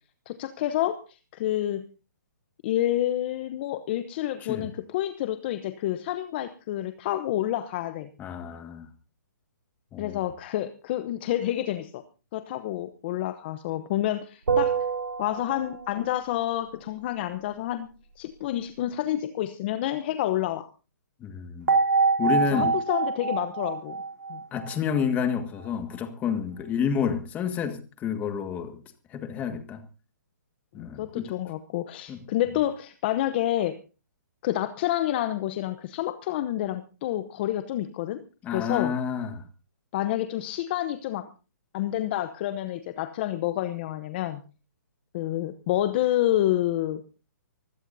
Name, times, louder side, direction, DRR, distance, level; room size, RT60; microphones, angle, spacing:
voice 1, 0.3-1.8 2.6-8.1 10.0-12.0 12.3-14.8 15.2-17.9 18.2-20.7 22.5-24.0 24.3-24.4 30.7-33.8 34.4-38.2 38.5-38.9 39.9-41.3 41.7-44.4 45.1-47.0, left 13 dB, 35° left, 11 dB, 0.9 m, -28 dB
voice 2, 4.4-4.7 8.2-8.9 9.9-10.2 21.2-21.7 22.2-22.7 24.5-28.8 29.1-29.8 30.7-31.3 32.1-32.2 38.4-39.4, left 7 dB, 15° left, 8 dB, 1.8 m, -29 dB
sound 1, 14.5-16.0 21.7-25.0, right 5 dB, 80° right, 4.1 m, -26 dB
24.0 x 16.0 x 2.7 m, 0.35 s
hypercardioid pair, 150°, 10 cm